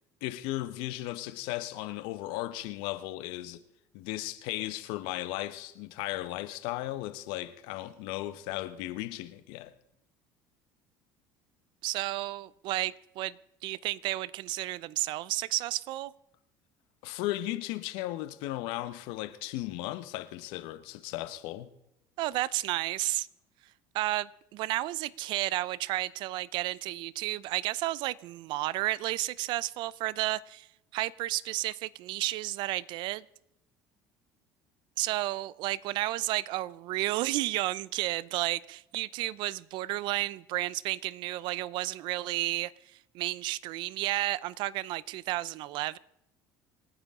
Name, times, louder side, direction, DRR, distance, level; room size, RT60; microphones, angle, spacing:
voice 1, 0.2-3.6 3.9-9.7 17.0-21.7, left 16 dB, 75° left, 1.1 m, -36 dB
voice 2, 11.8-13.4 13.6-16.1 22.2-23.3 23.9-30.7 30.9-33.2 35.0-42.7 43.1-46.0, right 17 dB, 65° right, 0.6 m, -32 dB
27.0 x 10.0 x 3.7 m
supercardioid pair, 105°, 8 cm